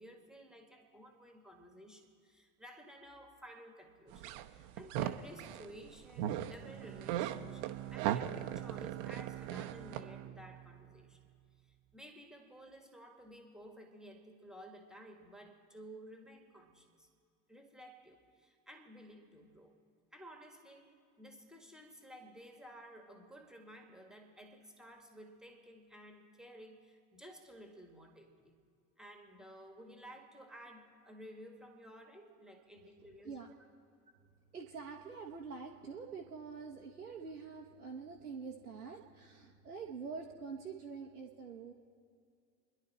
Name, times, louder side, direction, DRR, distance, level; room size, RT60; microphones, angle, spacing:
voice 1, 0.0-11.2 11.6-17.1 17.5-19.8 20.1-28.6 29.0-33.5, equal, ahead, 3 dB, 1.9 m, -54 dB
sound 1, 4.1-5.7 6.1-6.5 6.8-10.0, right 11 dB, 50° right, 1.0 m, -37 dB
Bowed string instrument, 6.6-11.6, right 16 dB, 30° right, 0.5 m, -47 dB
voice 2, 34.5-41.7, right 5 dB, 85° right, -1 dB, 1.1 m, -46 dB
30.0 x 11.0 x 4.3 m, 2.3 s
figure-of-eight pair, 65°, 44 cm